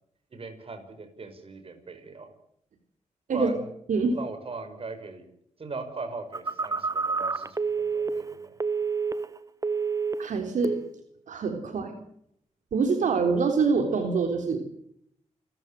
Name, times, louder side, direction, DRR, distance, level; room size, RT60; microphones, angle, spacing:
voice 1, 0.3-2.3 3.3-3.7 4.1-5.2 5.6-8.6, right 3 dB, 45° right, 8 dB, 5.8 m, -39 dB
Telephone, 6.3-9.4 9.6-10.3 10.6-11.0, right 5 dB, 25° right, 1.3 m, -29 dB
voice 2, 10.2-10.7 11.3-11.9 12.7-14.7, right 4 dB, 80° right, 5 dB, 3.7 m, -25 dB
29.0 x 14.5 x 9.0 m, 0.72 s
cardioid pair, 95°, 13 cm